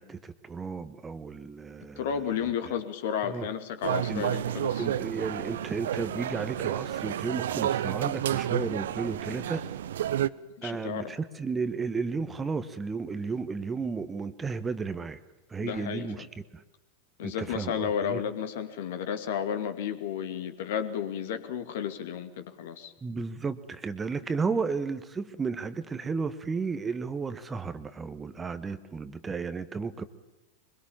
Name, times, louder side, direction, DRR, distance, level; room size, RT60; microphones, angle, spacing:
voice 1, 0.0-2.5 3.2-3.5 4.1-4.3 4.8-9.7 10.6-15.2 15.5-16.3 16.5-16.6 17.2-18.2 23.0-30.0, right 4 dB, 15° right, 12 dB, 1.2 m, -33 dB
voice 2, 2.0-4.9 10.6-11.1 15.6-16.3 17.2-22.9, left 8 dB, 55° left, 9 dB, 2.4 m, -32 dB
sound 1, 3.8-10.3, right 11 dB, 60° right, 0.7 m, -30 dB
24.0 x 22.5 x 7.2 m, 1.1 s
figure-of-eight pair, 90°, 0 cm